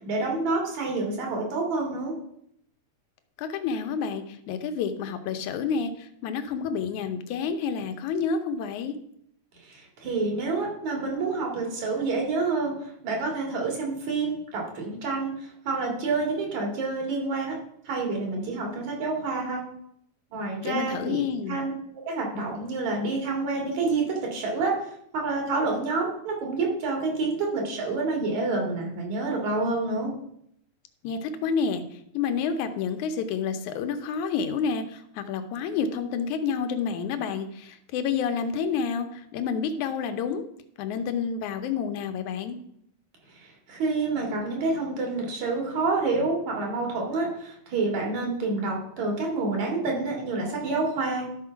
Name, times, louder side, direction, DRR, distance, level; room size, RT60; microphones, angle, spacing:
voice 1, 0.1-2.1 9.6-12.8 13.0-15.3 15.7-17.6 17.9-19.6 20.3-24.7 25.1-30.1 43.7-51.3, right 3 dB, 65° right, 0 dB, 3.7 m, -28 dB
voice 2, 3.4-8.9 20.6-21.6 31.0-31.8 32.1-40.4 40.8-42.6, left 6 dB, 80° left, 7 dB, 2.3 m, -29 dB
12.0 x 4.7 x 5.8 m, 0.71 s
omnidirectional pair, 3.5 m